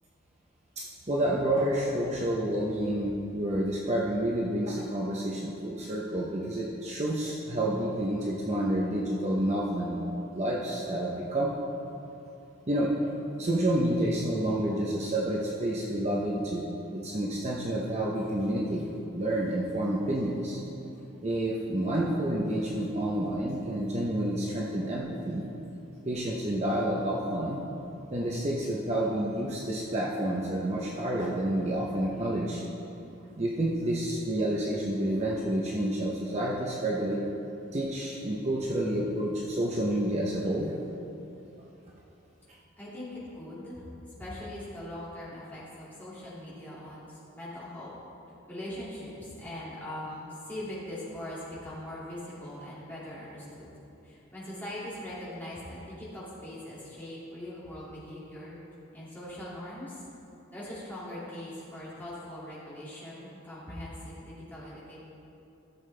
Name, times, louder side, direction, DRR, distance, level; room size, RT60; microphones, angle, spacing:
voice 1, 0.8-10.1 10.3-11.5 12.7-12.9 13.4-16.7 16.9-18.8 19.1-20.6 21.2-25.5 26.1-27.6 28.1-32.6 33.4-37.2 37.7-40.7, right 1 dB, 35° right, -3 dB, 0.7 m, -29 dB
voice 2, 42.8-43.8 44.2-47.9 48.5-53.7 54.0-58.6 58.9-60.0 60.5-65.0, left 1 dB, 10° left, -9 dB, 2.4 m, -41 dB
14.5 x 7.2 x 3.3 m, 2.9 s
head